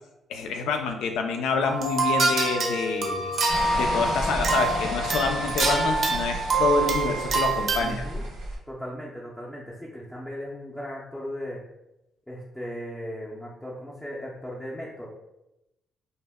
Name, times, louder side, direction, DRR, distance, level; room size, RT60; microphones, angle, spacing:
voice 1, 0.3-3.3 3.7-8.1, left 4 dB, 85° left, 5 dB, 0.3 m, -27 dB
sound 1, 1.6-8.0, right 3 dB, 55° right, 0.6 m, -26 dB
sound 2, 3.5-8.6, right 1 dB, 90° right, 0.9 m, -33 dB
voice 2, 7.8-8.2 8.7-11.6 12.3-15.1, equal, 5° left, -5 dB, 0.5 m, -37 dB
2.1 x 2.1 x 3.4 m, 0.90 s
cardioid pair, 90°, 0 cm